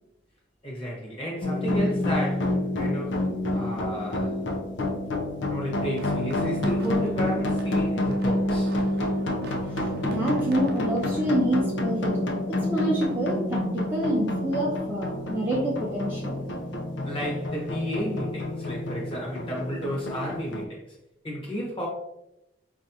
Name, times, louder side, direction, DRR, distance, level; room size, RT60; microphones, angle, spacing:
voice 1, 0.6-3.2 3.5-4.4 5.5-8.7 17.0-20.8 21.2-21.9, equal, 30° left, -3 dB, 1.2 m, -32 dB
sound 1, 1.4-20.6, left 1 dB, 80° left, 0.6 m, -28 dB
sound 2, 5.5-11.4, right 2 dB, 55° right, 0.5 m, -43 dB
voice 2, 9.7-16.4, right 1 dB, 10° right, -5 dB, 0.5 m, -27 dB
4.8 x 2.4 x 2.7 m, 0.87 s
head